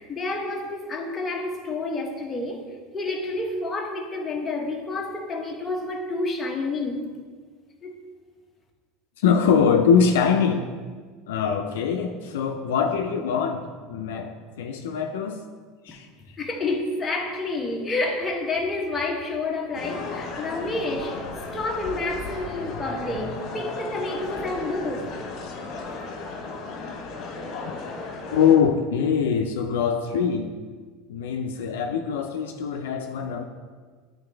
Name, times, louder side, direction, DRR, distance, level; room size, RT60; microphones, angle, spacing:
voice 1, 0.0-7.2 7.8-7.9 15.9-21.3 21.5-25.1, left 2 dB, 20° left, 0 dB, 1.0 m, -29 dB
voice 2, 9.2-10.7 11.3-15.4 15.8-16.1 28.3-30.5 31.1-33.4, left 6 dB, 90° left, 3 dB, 0.4 m, -23 dB
sound 1, 19.7-28.6, left 3 dB, 50° left, 1.4 m, -35 dB
8.8 x 4.0 x 3.4 m, 1.5 s
supercardioid pair, 120°, 0 cm